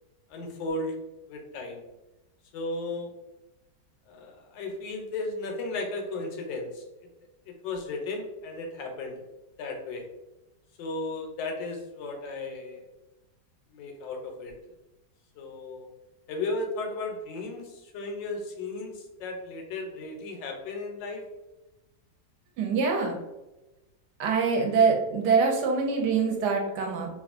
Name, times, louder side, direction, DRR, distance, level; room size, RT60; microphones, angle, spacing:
voice 1, 0.3-0.9 1.3-1.8 2.5-3.1 4.1-6.8 7.5-9.2 9.6-10.1 10.8-12.8 13.7-14.6 15.4-15.9 16.3-21.2, left 2 dB, 85° left, 2 dB, 1.3 m, -35 dB
voice 2, 22.6-23.2 24.2-27.1, right 5 dB, 75° right, 0 dB, 1.1 m, -24 dB
3.0 x 2.3 x 2.4 m, 1.0 s
omnidirectional pair, 1.9 m